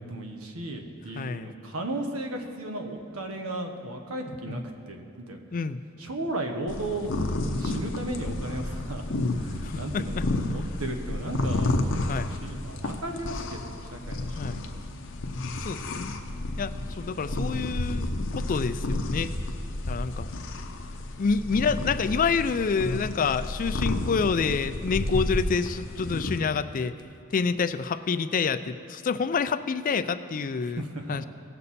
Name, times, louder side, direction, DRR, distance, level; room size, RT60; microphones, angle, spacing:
voice 1, 0.0-5.4 6.0-7.2 7.6-9.1 9.4-11.8 12.4-14.7 16.3-17.6 30.6-31.2, right 1 dB, 85° right, 4 dB, 1.1 m, -35 dB
voice 2, 1.2-1.5 4.5-4.6 5.5-5.8 9.6-10.2 10.5-10.6 12.1-12.3 14.4-14.6 15.6-16.2 16.6-19.3 19.9-20.3 21.2-26.9 27.3-30.8 31.1-31.2, left 5 dB, 40° left, 12 dB, 0.4 m, -28 dB
sound 1, 6.7-26.4, left 2 dB, 60° left, 0.8 m, -31 dB
17.5 x 6.8 x 4.2 m, 2.8 s
head